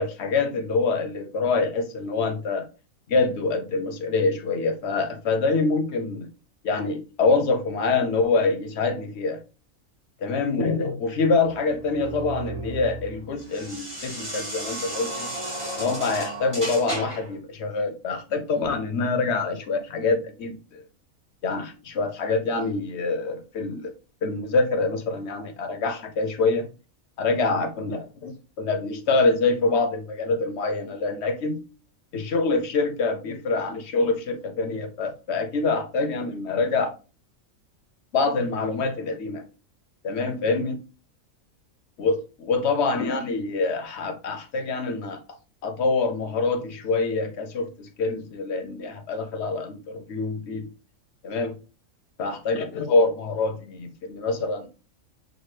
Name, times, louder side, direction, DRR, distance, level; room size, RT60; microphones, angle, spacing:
voice 1, 0.0-2.7 3.1-6.3 6.6-9.4 10.2-15.3 15.7-20.8 21.4-23.9 24.2-26.7 27.2-31.6 32.1-37.0 38.1-39.4 40.0-40.8 42.0-45.2 45.6-50.7 51.2-51.6 52.2-54.7, left 3 dB, 60° left, 0.9 m, -25 dB
sound 1, 11.5-17.3, right 1 dB, 45° right, 2.7 m, -34 dB
6.2 x 2.3 x 3.1 m
omnidirectional pair, 1.4 m